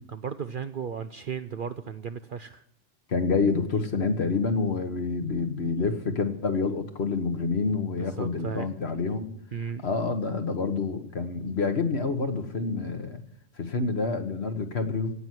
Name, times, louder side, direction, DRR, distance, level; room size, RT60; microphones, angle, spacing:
voice 1, 0.1-2.6 8.0-8.7 9.5-9.9, right 7 dB, 55° right, 10 dB, 0.7 m, -35 dB
voice 2, 3.1-9.3 9.8-13.2 13.6-15.1, left 4 dB, 55° left, 7 dB, 1.6 m, -27 dB
17.0 x 6.1 x 9.5 m, 0.75 s
omnidirectional pair, 1.3 m